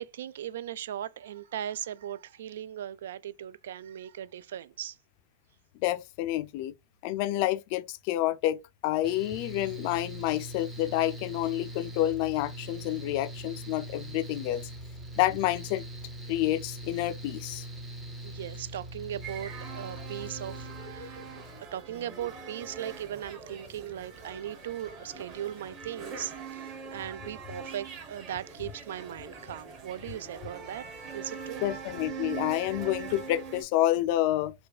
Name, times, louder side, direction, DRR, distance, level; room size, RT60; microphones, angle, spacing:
voice 1, 0.0-5.0 18.2-21.2 21.6-31.6, right 11 dB, 70° right, 0.3 m, -38 dB
voice 2, 5.8-6.7 7.0-14.7 15.2-15.8 16.3-17.6 31.6-34.5, left 14 dB, 40° left, 0.4 m, -29 dB
Mechanical fan, 9.0-21.6, right 1 dB, 10° right, 0.6 m, -42 dB
sound 1, 19.2-33.6, right 5 dB, 30° right, 1.1 m, -42 dB
4.6 x 2.2 x 2.3 m
supercardioid pair, 155°, 0 cm